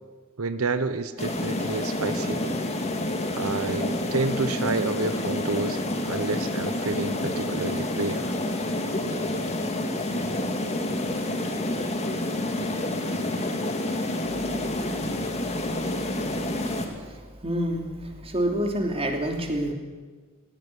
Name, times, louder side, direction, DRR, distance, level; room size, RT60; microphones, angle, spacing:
voice 1, 0.4-2.6 3.3-8.3, right 3 dB, 75° right, 12 dB, 1.0 m, -29 dB
sound 1, 1.2-16.9, left 1 dB, 30° left, 2.4 m, -28 dB
voice 2, 17.4-19.7, right 1 dB, 25° right, 3 dB, 3.0 m, -27 dB
17.0 x 16.5 x 10.0 m, 1.4 s
head